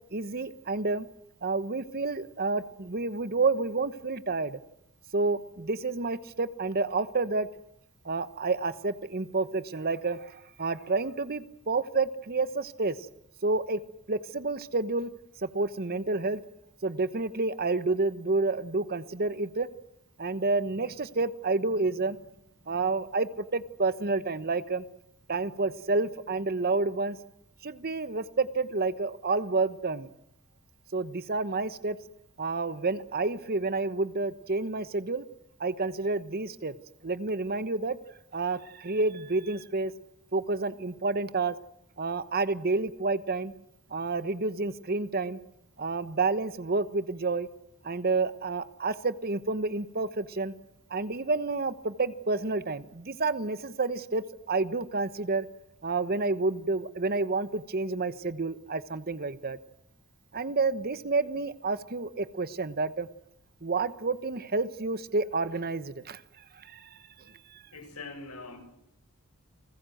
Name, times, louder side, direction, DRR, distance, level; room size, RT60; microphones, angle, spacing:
voice 1, 0.1-1.1 1.4-4.6 5.1-7.5 8.0-13.1 13.4-13.8 14.1-15.1 15.4-16.4 16.8-19.7 20.2-22.2 22.7-24.8 25.3-27.2 27.6-30.1 30.9-32.0 32.4-35.3 35.6-36.8 37.0-38.0 38.3-39.9 40.3-41.5 42.0-43.5 43.9-45.4 45.8-47.5 47.8-50.5 50.9-55.5 55.8-59.6 60.3-63.1 63.6-67.0 67.2-67.6, right 3 dB, 45° right, 14 dB, 1.1 m, -29 dB
voice 2, 67.7-68.6, left 3 dB, 85° left, 5 dB, 7.2 m, -42 dB
30.0 x 21.0 x 7.9 m, 0.77 s
head